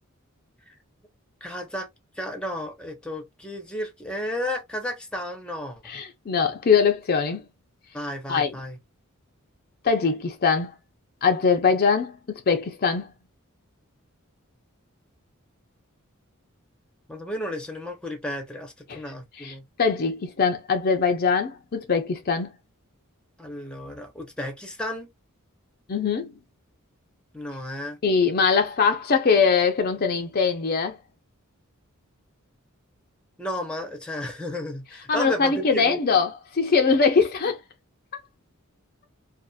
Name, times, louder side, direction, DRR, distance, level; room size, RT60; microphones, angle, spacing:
voice 1, 1.4-1.9 2.2-5.9 7.9-8.8 17.1-19.6 23.4-25.1 27.3-28.0 33.4-36.0, left 1 dB, 5° left, 0.6 m, -33 dB
voice 2, 5.8-7.4 8.3-8.5 9.8-10.7 11.2-12.2 12.5-13.1 18.9-19.0 19.4-22.5 25.9-26.3 28.0-31.0 35.1-37.6, left 5 dB, 45° left, 0.5 m, -22 dB
2.6 x 2.4 x 2.2 m
head